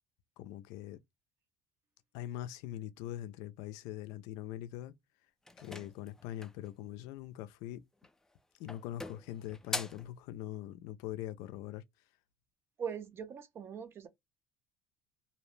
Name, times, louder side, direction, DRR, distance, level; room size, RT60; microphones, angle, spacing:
voice 1, 0.4-1.0 2.1-4.9 5.6-7.8 8.6-11.8, left 12 dB, 80° left, 0.4 m, -42 dB
sound 1, 5.5-6.7 7.9-8.3 8.7-10.1, left 2 dB, 10° left, 0.4 m, -42 dB
voice 2, 12.8-14.1, right 7 dB, 40° right, 0.6 m, -41 dB
2.6 x 2.0 x 3.1 m
supercardioid pair, 105°, 6 cm